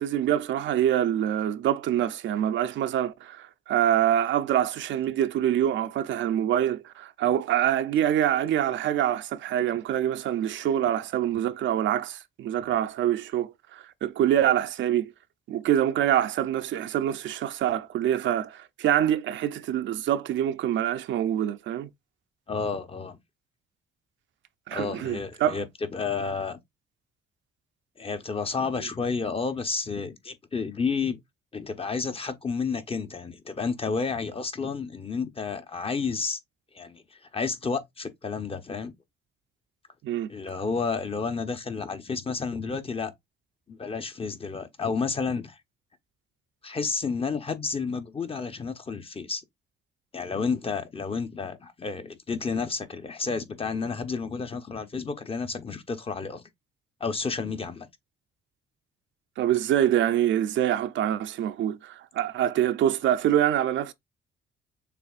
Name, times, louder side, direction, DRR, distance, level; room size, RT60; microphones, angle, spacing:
voice 1, 0.0-15.1 15.5-21.9 24.7-25.6 40.0-40.3 59.4-63.9, right 11 dB, 70° right, 0.5 m, -25 dB
voice 2, 22.5-23.2 24.7-26.6 28.0-31.2 31.5-36.4 36.7-38.9 40.3-43.1 43.7-45.6 46.6-49.4 50.1-56.4 57.0-57.9, left 5 dB, 30° left, 0.8 m, -31 dB
6.7 x 2.6 x 2.4 m
cardioid pair, 90°, 20 cm